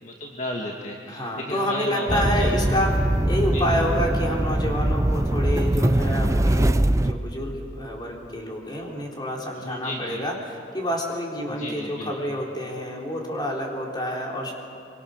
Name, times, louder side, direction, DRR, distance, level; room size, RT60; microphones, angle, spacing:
voice 1, 0.0-1.2 1.5-2.8 3.5-3.6 9.6-10.2 11.5-12.1, left 1 dB, 40° left, 0 dB, 1.7 m, -33 dB
voice 2, 1.1-14.5, equal, 25° left, -1 dB, 3.9 m, -28 dB
sound 1, 2.1-7.1, right 1 dB, 15° right, 0.5 m, -22 dB
25.0 x 24.0 x 6.6 m, 2.4 s
head